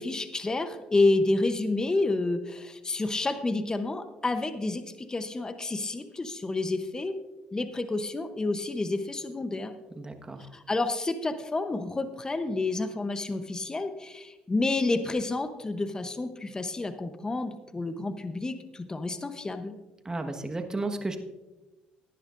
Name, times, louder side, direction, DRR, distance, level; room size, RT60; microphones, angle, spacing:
voice 1, 0.0-7.2 7.5-9.7 10.5-19.8, left 2 dB, 20° left, 9 dB, 0.9 m, -29 dB
voice 2, 9.9-10.5 20.0-21.2, right 2 dB, 20° right, 5 dB, 1.4 m, -33 dB
17.0 x 10.5 x 2.6 m, 1.1 s
supercardioid pair, 75°, 3 cm